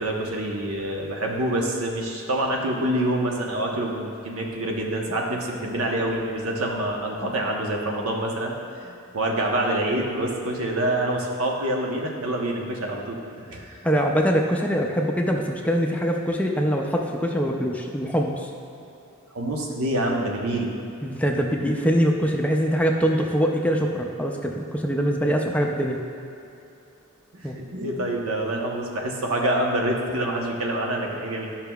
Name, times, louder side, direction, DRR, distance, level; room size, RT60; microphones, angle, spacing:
voice 1, 0.0-8.6 8.8-13.2 13.5-13.8 19.3-20.7 27.4-31.5, right 1 dB, 75° right, 0 dB, 0.9 m, -26 dB
voice 2, 13.8-18.5 21.0-26.0 27.4-27.6, equal, 5° left, 1 dB, 0.4 m, -23 dB
11.0 x 5.7 x 2.3 m, 2.8 s
head